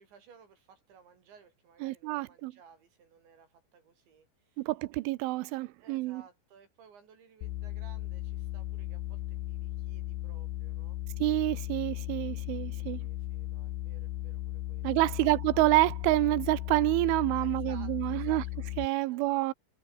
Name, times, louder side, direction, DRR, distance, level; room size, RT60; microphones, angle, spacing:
voice 1, 0.0-4.7 5.8-11.0 12.8-15.3 17.4-19.2, right 6 dB, 65° right, 7.6 m, -57 dB
voice 2, 1.8-2.5 4.6-6.2 11.2-13.0 14.8-18.4 18.8-19.5, right 19 dB, 85° right, 3.2 m, -28 dB
sound 1, 7.4-18.9, left 14 dB, 70° left, 2.6 m, -36 dB
omnidirectional pair, 5.6 m